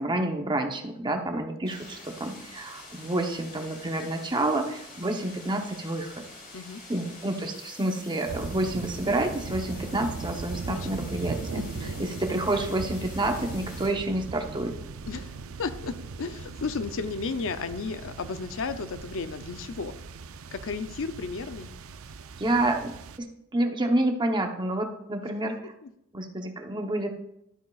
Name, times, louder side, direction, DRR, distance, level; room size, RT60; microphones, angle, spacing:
voice 1, 0.0-6.2 6.9-14.7 22.4-23.3 23.5-25.7 26.1-27.1, right 1 dB, 20° right, 4 dB, 0.9 m, -29 dB
sound 1, 1.6-13.9, left 2 dB, 45° left, 3.4 m, -47 dB
sound 2, 8.3-23.2, right 4 dB, 70° right, 0.5 m, -39 dB
voice 2, 10.7-11.0 11.6-11.9 15.1-19.9 20.5-21.7 25.8-25.9, left 4 dB, 65° left, 10 dB, 0.6 m, -34 dB
12.0 x 9.1 x 2.4 m, 0.79 s
head